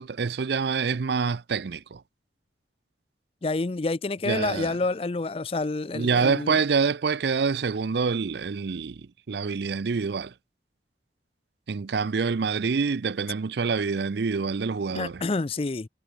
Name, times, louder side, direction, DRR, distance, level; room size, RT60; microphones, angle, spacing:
voice 1, 0.0-2.0 4.2-4.8 5.9-10.3 11.7-15.2, right 5 dB, 65° right, 0.5 m, -26 dB
voice 2, 3.4-6.6 14.9-15.9, left 3 dB, 30° left, 0.5 m, -28 dB
head